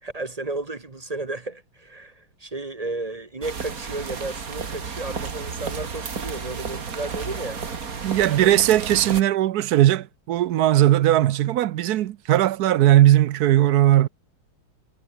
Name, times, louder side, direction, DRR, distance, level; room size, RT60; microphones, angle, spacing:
voice 1, 0.0-7.6 8.2-8.6, right 2 dB, 25° right, 0.9 m, -33 dB
sound 1, 3.4-9.2, right 5 dB, 45° right, 2.4 m, -32 dB
voice 2, 8.0-14.1, right 13 dB, 70° right, 0.9 m, -18 dB
omnidirectional pair, 2.3 m